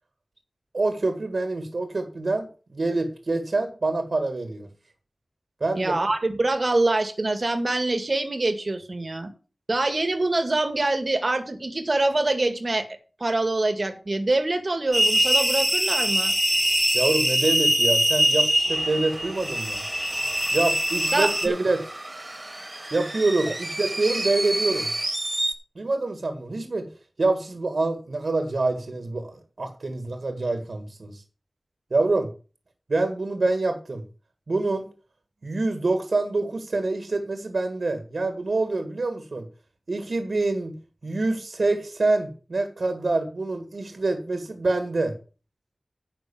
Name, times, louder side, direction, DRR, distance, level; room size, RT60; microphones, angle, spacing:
voice 1, 0.7-4.7 5.6-5.9 16.9-19.8 20.5-21.8 22.9-24.9 25.8-26.9 27.2-31.2 31.9-32.3 32.9-34.0 34.5-34.9 35.4-39.5 39.9-45.2, right 2 dB, 65° right, 8 dB, 1.9 m, -26 dB
voice 2, 5.8-9.3 9.7-12.9 13.2-16.4 21.1-21.5, right 2 dB, 50° right, 9 dB, 1.9 m, -25 dB
sound 1, 14.9-21.5, equal, 10° right, 2.6 m, -23 dB
sound 2, 18.7-25.5, right 1 dB, 30° right, 2.2 m, -32 dB
10.0 x 6.0 x 7.0 m, 0.36 s
wide cardioid pair, 50°, 0 cm